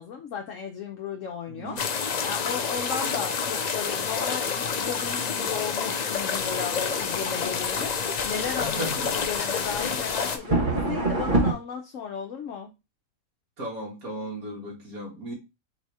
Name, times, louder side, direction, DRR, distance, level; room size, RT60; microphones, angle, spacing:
voice 1, 0.0-12.7, left 7 dB, 65° left, 1.0 m, -35 dB
sound 1, 1.7-11.5, right 2 dB, 35° right, 1.2 m, -31 dB
sound 2, 1.8-10.4, left 6 dB, 85° left, 0.3 m, -28 dB
voice 2, 8.6-9.1 13.6-15.3, right 1 dB, 75° right, 2.2 m, -35 dB
4.1 x 2.8 x 4.6 m
omnidirectional pair, 1.5 m